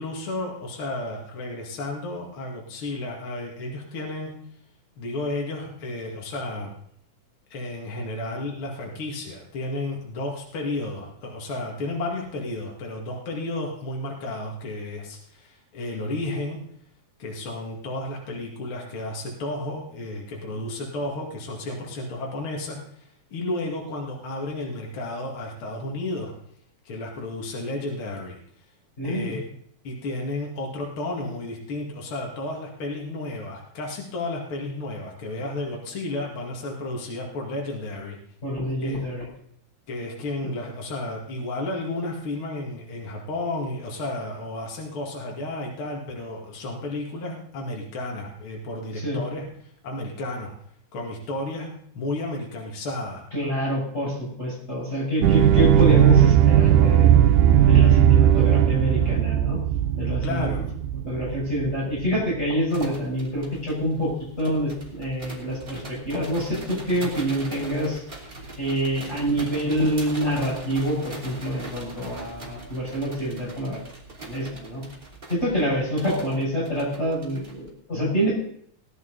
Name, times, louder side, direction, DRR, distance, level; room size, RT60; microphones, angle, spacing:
voice 1, 0.0-4.3 5.0-6.7 7.5-16.6 17.2-22.8 23.3-26.3 26.9-28.4 29.0-29.4 29.8-38.2 38.8-39.0 39.9-49.5 49.8-50.5 50.9-53.3 60.2-60.6, left 2 dB, 45° left, -1 dB, 2.8 m, -32 dB
voice 2, 29.0-29.4 38.4-39.3 49.0-49.2 53.3-57.1 57.6-59.6 60.0-60.5 61.0-68.0 68.6-73.8 74.2-74.8 75.3-78.3, equal, 20° left, -6 dB, 6.7 m, -26 dB
sound 1, 55.2-61.7 62.1-62.2, right 10 dB, 90° right, 2.2 m, -17 dB
sound 2, 62.7-77.7, right 2 dB, 20° right, 2.8 m, -41 dB
18.5 x 11.0 x 4.0 m, 0.65 s
omnidirectional pair, 3.5 m